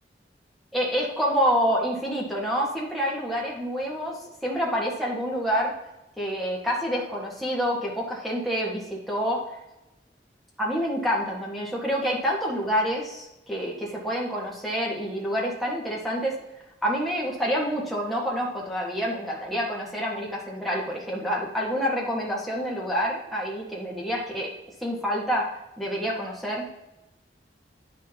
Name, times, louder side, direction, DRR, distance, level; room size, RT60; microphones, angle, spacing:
voice 1, 0.7-4.2 4.4-5.7 6.2-9.4 10.6-16.3 16.8-24.5 24.8-25.4 25.8-26.7, equal, ahead, -4 dB, 1.6 m, -27 dB
9.6 x 6.5 x 2.9 m, 0.94 s
head